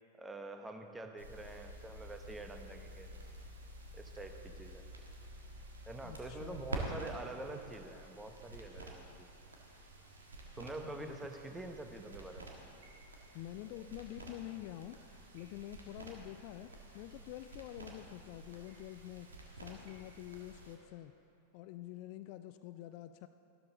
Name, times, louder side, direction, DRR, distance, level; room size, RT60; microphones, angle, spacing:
voice 1, 0.2-3.1 3.9-4.8 5.9-9.3 10.6-12.5, right 2 dB, 10° right, 5 dB, 1.0 m, -46 dB
sound 1, 1.2-20.8, right 1 dB, 75° right, 1.5 m, -49 dB
voice 2, 6.0-6.6 10.8-11.2 13.3-15.0 15.3-19.3 19.6-21.2 21.5-23.3, left 14 dB, 45° left, 11 dB, 0.4 m, -47 dB
sound 2, 11.5-21.2, right 2 dB, 55° right, 1.8 m, -70 dB
14.0 x 12.5 x 3.8 m, 2.7 s
figure-of-eight pair, 90°, 0 cm